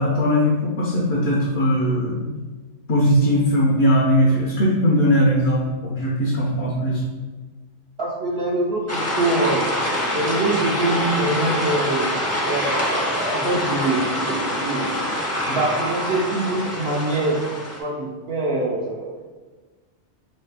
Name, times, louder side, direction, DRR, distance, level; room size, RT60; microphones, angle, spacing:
voice 1, 0.0-2.2 2.9-7.0, equal, 60° left, -4 dB, 0.9 m, -19 dB
voice 2, 8.0-9.7 10.1-12.1 12.4-14.9 15.5-17.4 17.8-19.2, right 2 dB, 60° right, -4 dB, 0.8 m, -24 dB
sound 1, 8.9-17.8, left 1 dB, 20° left, 0.5 m, -25 dB
3.2 x 2.7 x 4.6 m, 1.3 s
omnidirectional pair, 1.2 m